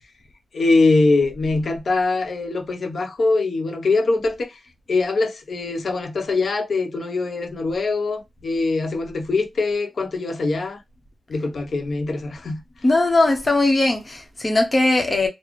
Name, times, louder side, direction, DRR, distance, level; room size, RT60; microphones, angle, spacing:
voice 1, 0.5-4.6 4.9-10.8 11.3-12.6, left 3 dB, 60° left, 0.9 m, -22 dB
voice 2, 12.8-15.3, left 2 dB, 30° left, 0.9 m, -19 dB
4.1 x 2.1 x 3.1 m
wide cardioid pair, 165°, 0 cm